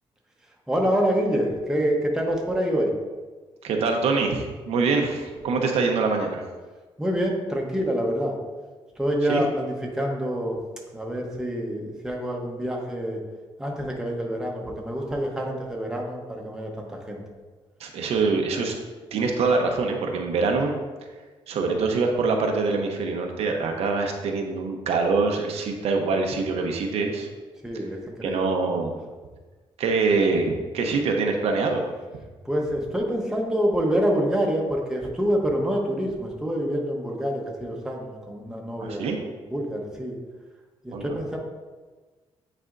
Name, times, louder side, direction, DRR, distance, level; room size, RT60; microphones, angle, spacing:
voice 1, 0.7-2.9 7.0-8.4 9.0-10.6 10.9-13.2 13.6-17.2 27.6-28.6 32.4-39.1 39.5-40.2 40.8-41.4, equal, 5° right, -1 dB, 0.9 m, -26 dB
voice 2, 3.6-6.4 9.3-9.4 17.8-18.8 19.1-20.7 21.5-27.3 28.2-28.9 29.8-31.8 38.8-39.2 40.9-41.2, right 4 dB, 80° right, 2 dB, 0.8 m, -24 dB
8.9 x 4.2 x 2.5 m, 1.3 s
cardioid pair, 140°, 11 cm